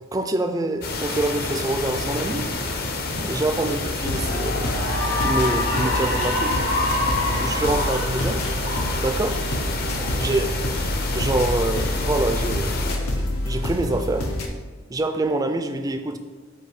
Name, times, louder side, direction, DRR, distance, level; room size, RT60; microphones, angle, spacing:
voice 1, 0.1-2.5 3.2-6.6 7.3-8.4 9.0-9.4 10.2-10.5 11.1-12.9 13.2-14.3 14.9-16.2, right 2 dB, 15° right, 6 dB, 0.3 m, -26 dB
sound 1, 0.8-13.0, left 3 dB, 45° left, 0.6 m, -29 dB
Cheering / Applause, 3.3-3.6 4.1-10.6, left 2 dB, 65° left, 1.7 m, -28 dB
sound 2, 4.0-14.5, left 1 dB, 85° left, 0.9 m, -28 dB
7.9 x 2.7 x 4.8 m, 1.5 s
head